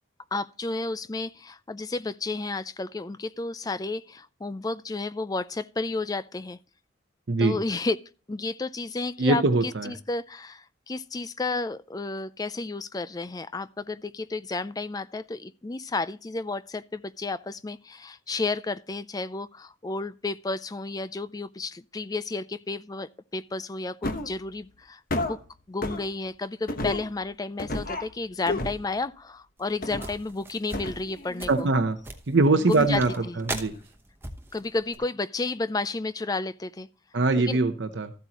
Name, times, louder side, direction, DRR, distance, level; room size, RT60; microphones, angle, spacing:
voice 1, 0.3-6.6 7.4-8.0 8.3-25.4 25.7-31.7 32.7-33.4 34.5-36.9 37.5-37.6, left 3 dB, 20° left, 0.4 m, -32 dB
voice 2, 9.2-9.9 31.5-32.0 32.3-33.1 33.4-33.7 37.1-38.1, right 3 dB, 65° right, 0.8 m, -22 dB
sound 1, 24.0-24.4 25.1-25.4 25.8-26.1 26.7-27.1 27.6-28.1 28.5-28.9 29.8-30.2 30.7-31.5 32.8-33.3 33.6-33.7, left 2 dB, 45° left, 1.1 m, -32 dB
sound 2, 29.6-35.0, right 2 dB, 10° right, 0.9 m, -39 dB
14.0 x 8.2 x 2.9 m
head